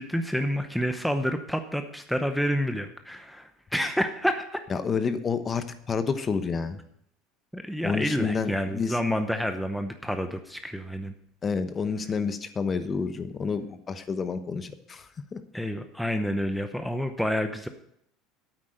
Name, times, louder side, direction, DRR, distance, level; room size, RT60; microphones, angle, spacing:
voice 1, 0.0-4.6 7.5-11.1 15.5-17.7, equal, ahead, 7 dB, 0.8 m, -29 dB
voice 2, 4.7-6.8 7.8-9.0 11.4-15.4, left 5 dB, 25° left, 10 dB, 1.0 m, -29 dB
8.7 x 8.7 x 6.5 m, 0.73 s
supercardioid pair, 120°, 0 cm